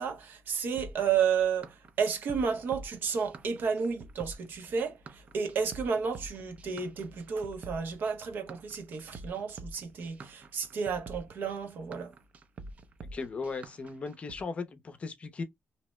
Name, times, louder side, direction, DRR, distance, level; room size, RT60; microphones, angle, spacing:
voice 1, 0.0-12.1, right 6 dB, 70° right, 0.7 m, -32 dB
sound 1, 0.8-14.4, right 2 dB, 40° right, 0.4 m, -47 dB
voice 2, 13.1-15.4, left 4 dB, 35° left, 0.5 m, -37 dB
2.7 x 2.1 x 3.0 m
wide cardioid pair, 140°, 4 cm